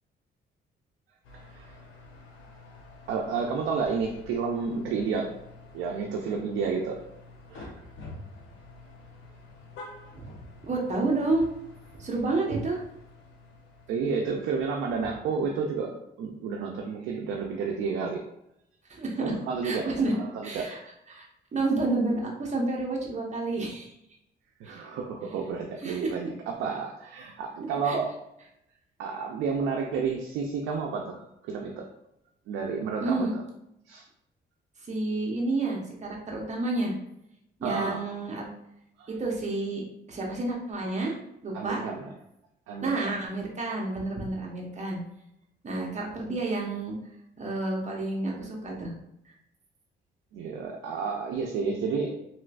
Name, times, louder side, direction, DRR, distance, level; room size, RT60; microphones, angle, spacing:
sound 1, 1.2-15.6, left 2 dB, 80° left, 0.8 m, -49 dB
voice 1, 1.3-1.7 3.1-5.3 5.7-7.0 7.5-7.7 13.9-15.9 16.2-18.2 19.2-19.9 20.2-20.8 24.6-28.1 29.0-31.9 32.5-33.3 33.9-34.0 37.6-38.0 39.0-39.1 41.5-42.0 42.7-42.9 50.3-52.1, right 5 dB, 90° right, 1 dB, 0.4 m, -31 dB
voice 2, 10.6-11.5 12.0-12.8 18.9-19.3 19.6-20.1 20.4-20.8 21.1-21.2 21.5-24.0 24.6-24.9 25.8-26.1 27.8-28.0 33.0-33.3 34.8-37.0 37.6-38.5 39.1-39.8 40.1-41.2 41.4-41.8 42.8-45.0 45.6-46.9 47.4-48.9 49.2-49.3, right 2 dB, 35° right, -2 dB, 1.0 m, -30 dB
3.1 x 3.0 x 2.5 m, 0.81 s
cardioid pair, 90°, 20 cm